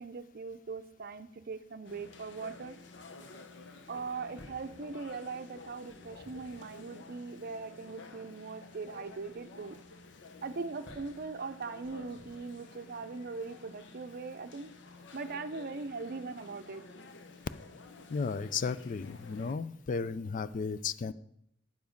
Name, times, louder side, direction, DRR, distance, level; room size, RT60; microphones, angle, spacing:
voice 1, 0.0-2.8 3.9-9.8 10.4-14.7 15.1-16.8, right 4 dB, 50° right, 11 dB, 0.6 m, -40 dB
sound 1, 1.8-19.6, left 3 dB, 65° left, 0.9 m, -52 dB
sound 2, 4.4-4.8 5.7-6.7 10.9-11.2 11.8-12.6, equal, 5° right, 1.1 m, -55 dB
voice 2, 18.1-21.1, left 5 dB, 40° left, 15 dB, 0.3 m, -34 dB
9.4 x 7.1 x 5.2 m, 0.76 s
head